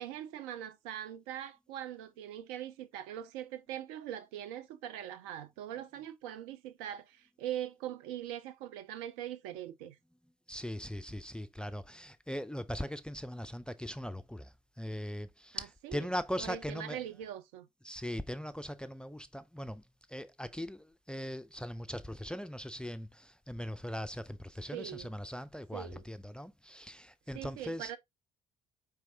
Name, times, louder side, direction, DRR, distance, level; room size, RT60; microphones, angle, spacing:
voice 1, 0.0-10.0 15.5-16.1 16.4-17.7 24.7-25.1 25.7-26.0 27.3-28.0, right 11 dB, 70° right, 0.6 m, -42 dB
voice 2, 10.5-17.0 17.8-19.8 20.1-27.9, equal, 5° left, 0.4 m, -40 dB
4.5 x 3.4 x 2.6 m
figure-of-eight pair, 50°, 19 cm